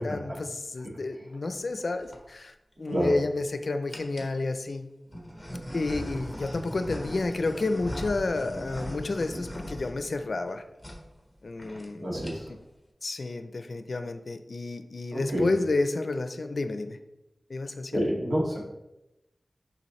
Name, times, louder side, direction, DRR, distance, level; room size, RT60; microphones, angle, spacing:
voice 1, 0.0-4.9 5.7-10.6 11.4-12.1 12.5-12.6 13.0-17.0 17.5-18.2, left 3 dB, 65° left, 8 dB, 0.5 m, -30 dB
sound 1, 1.8-2.2 2.9-3.4 3.9-4.4 5.1-10.5 10.8-11.0 11.3-11.4 11.6-11.9 12.1-12.6, equal, 10° left, 1.3 m, -39 dB
voice 2, 12.0-12.5 15.1-15.5 17.9-18.6, equal, 60° right, -4 dB, 2.1 m, -28 dB
6.9 x 5.2 x 3.1 m, 0.93 s
wide cardioid pair, 80°, 0 cm